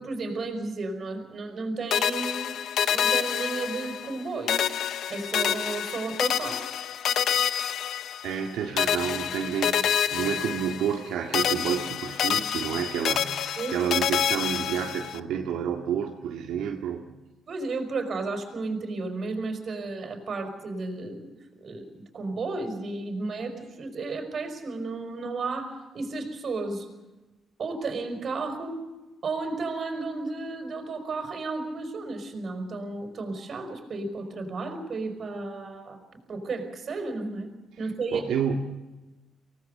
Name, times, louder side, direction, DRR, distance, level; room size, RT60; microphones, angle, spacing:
voice 1, 0.0-2.6 2.9-4.7 5.1-6.8 13.6-13.7 14.3-14.5 17.5-21.2 21.6-26.9 27.6-28.8 29.2-36.0 36.3-37.5 37.8-38.3, right 3 dB, 50° right, 6 dB, 5.2 m, -33 dB
sound 1, 1.9-4.2 4.5-8.5 8.8-11.1 11.3-15.2, left 9 dB, 70° left, 0.8 m, -27 dB
voice 2, 8.2-17.1 38.1-38.6, right 8 dB, 85° right, 1 dB, 1.9 m, -30 dB
24.5 x 18.5 x 6.7 m, 1.1 s
cardioid pair, 90°, 0 cm